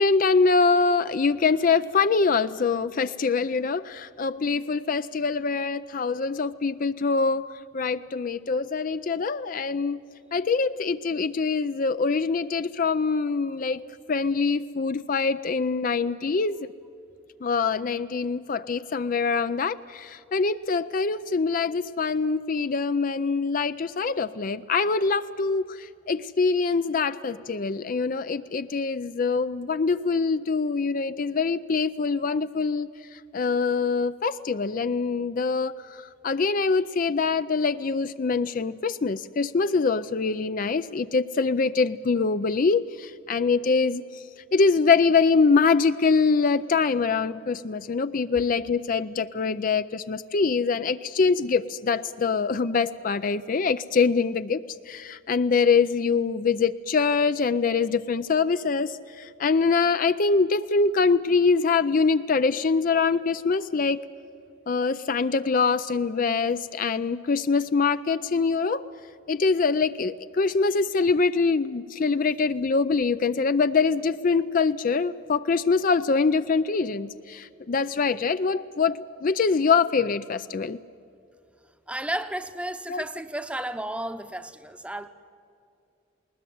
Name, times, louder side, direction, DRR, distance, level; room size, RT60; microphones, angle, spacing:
voice 1, 0.0-7.4 7.7-10.0 10.3-13.8 14.1-16.7 17.4-44.0 44.5-64.0 64.7-68.9 69.3-80.8 82.9-83.0, left 4 dB, 40° left, 12 dB, 0.4 m, -24 dB
voice 2, 81.9-85.1, right 1 dB, 5° right, 10 dB, 0.8 m, -33 dB
20.0 x 20.0 x 9.3 m, 2.6 s
head